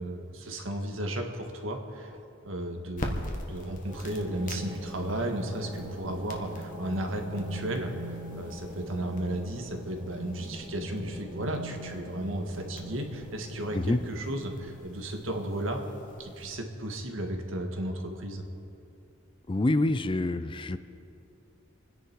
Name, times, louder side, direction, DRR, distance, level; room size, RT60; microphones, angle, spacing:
voice 1, 0.0-2.2 2.4-15.8 16.2-18.4, right 1 dB, 75° right, 3 dB, 1.8 m, -34 dB
sound 1, 2.9-16.5, left 1 dB, 40° left, 1.5 m, -45 dB
sound 2, 3.9-16.4, right 1 dB, 40° right, 3.1 m, -43 dB
voice 2, 19.5-20.8, left 2 dB, 25° left, 12 dB, 0.5 m, -26 dB
27.0 x 10.0 x 4.6 m, 2.7 s
head